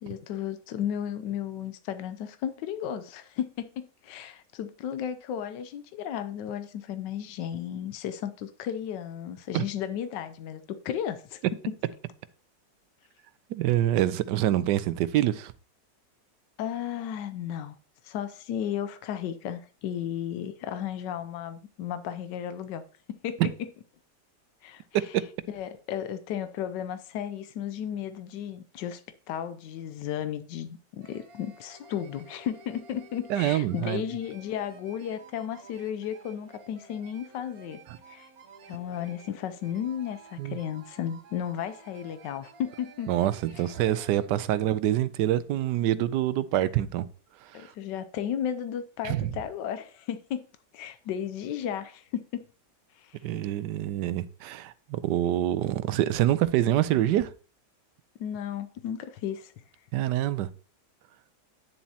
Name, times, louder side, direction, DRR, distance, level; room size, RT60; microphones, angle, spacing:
voice 1, 0.0-11.4 16.6-17.8 18.0-22.8 23.1-23.4 24.6-24.8 25.5-29.0 29.3-37.8 38.1-38.3 38.7-43.1 43.6-43.8 47.5-50.4 50.7-52.4 53.0-53.4 58.2-59.5, left 9 dB, 85° left, 1.3 m, -34 dB
voice 2, 13.5-15.5 33.3-34.0 40.4-40.6 43.1-47.1 47.4-47.7 49.0-49.3 53.2-57.3 59.9-60.5, right 13 dB, 80° right, 1.2 m, -26 dB
sound 1, 31.0-44.3, right 4 dB, 65° right, 1.2 m, -52 dB
9.8 x 7.2 x 2.8 m
omnidirectional pair, 1.9 m